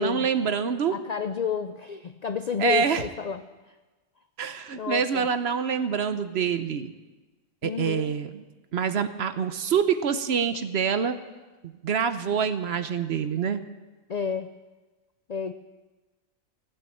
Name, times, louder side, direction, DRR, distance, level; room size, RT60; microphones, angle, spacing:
voice 1, 0.0-1.0 2.6-3.0 4.4-6.9 7.6-8.4 8.7-11.2 11.8-13.6, right 7 dB, 60° right, 11 dB, 0.9 m, -26 dB
voice 2, 0.9-3.4 3.7-3.8 4.7-5.3 7.6-8.2 14.1-14.5 15.3-15.5, left 6 dB, 65° left, 9 dB, 0.4 m, -30 dB
16.0 x 8.5 x 7.8 m, 1.2 s
omnidirectional pair, 1.4 m